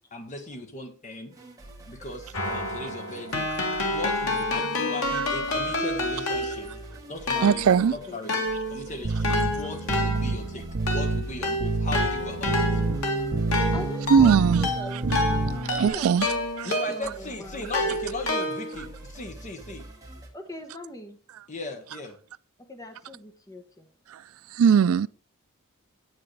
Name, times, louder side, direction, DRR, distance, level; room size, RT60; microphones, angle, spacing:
voice 1, 0.1-1.3 1.9-3.5 3.9-6.7 7.1-7.6 7.9-8.3 8.7-12.7 16.6-19.8 21.5-22.1, left 2 dB, 35° left, 1.4 m, -37 dB
sound 1, 1.3-20.3, right 1 dB, 15° right, 1.8 m, -46 dB
Keyboard (musical), 2.3-6.9 7.3-17.2 17.7-18.9, left 2 dB, 90° left, 2.2 m, -29 dB
voice 2, 7.4-7.9 14.1-14.7 15.0-15.2 15.5-16.3 16.6-16.7 24.1-24.2 24.5-25.1, right 7 dB, 75° right, 0.3 m, -20 dB
sound 2, 9.0-15.9, right 3 dB, 50° right, 0.7 m, -28 dB
voice 3, 13.7-16.4 16.9-18.0 20.3-21.2 22.7-23.9, equal, 15° left, 1.0 m, -41 dB
9.2 x 8.4 x 3.3 m
head